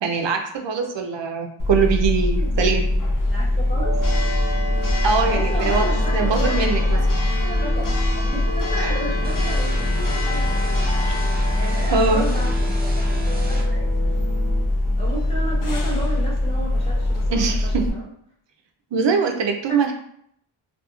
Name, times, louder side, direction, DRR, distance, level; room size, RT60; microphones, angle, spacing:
voice 1, 0.0-2.9 5.0-5.8 6.1-7.0 8.8-8.9 11.0-11.2 11.9-12.3 17.3-17.8 18.9-19.9, right 5 dB, 60° right, 4 dB, 0.5 m, -22 dB
Church bell, 1.6-17.9, left 1 dB, 40° left, 0.5 m, -22 dB
voice 2, 3.3-4.0 5.2-6.6 6.9-8.0 8.2-10.7 11.5-12.9 13.5-13.9 15.0-18.0 19.7-19.9, right 1 dB, 10° left, -10 dB, 1.0 m, -33 dB
sound 1, 3.8-14.6, equal, 70° left, 0.9 m, -34 dB
sound 2, 9.2-13.6, right 2 dB, 20° right, 0.5 m, -34 dB
2.8 x 2.4 x 2.3 m, 0.68 s
wide cardioid pair, 70°, 50 cm